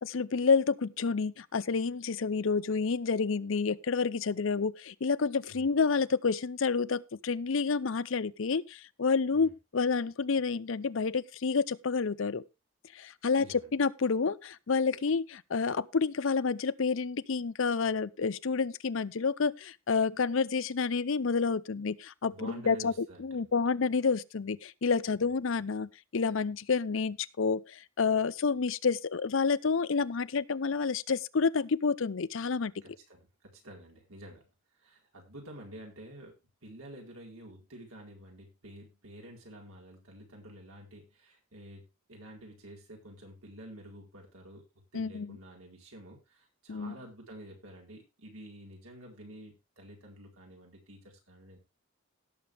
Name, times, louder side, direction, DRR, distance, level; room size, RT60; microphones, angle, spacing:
voice 1, 0.0-12.4 13.0-13.5 13.7-22.9 23.2-27.6 28.0-32.7 44.9-45.4 46.7-46.9, left 5 dB, 70° left, 0.6 m, -29 dB
voice 2, 13.4-13.7 22.3-23.5 32.8-34.4 34.7-36.4 36.6-41.8 42.1-44.6 44.9-51.6, right 1 dB, 90° right, 4.5 m, -49 dB
17.0 x 7.0 x 3.5 m
head